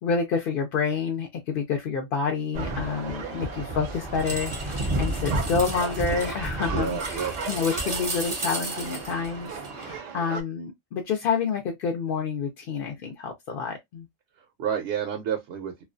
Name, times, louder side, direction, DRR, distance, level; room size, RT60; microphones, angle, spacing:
voice 1, 0.0-14.1, left 5 dB, 60° left, 0.6 m, -28 dB
sound 1, 2.5-10.0, right 2 dB, 35° right, 0.5 m, -32 dB
sound 2, 2.5-10.4, right 6 dB, 85° right, 0.3 m, -37 dB
voice 2, 6.7-7.3 14.4-15.8, right 8 dB, 70° right, 0.8 m, -30 dB
2.4 x 2.2 x 2.4 m
omnidirectional pair, 1.3 m